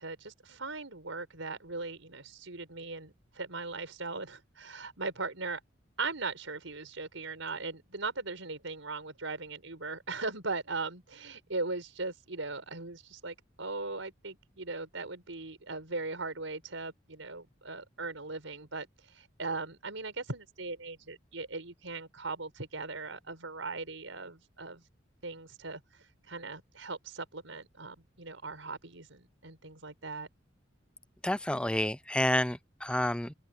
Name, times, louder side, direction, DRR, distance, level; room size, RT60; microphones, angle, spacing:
voice 1, 0.0-5.6 6.0-24.8 25.2-30.3, right 3 dB, 90° right, 5.4 m, -39 dB
voice 2, 31.2-33.3, left 1 dB, 5° left, 0.6 m, -29 dB
open air
head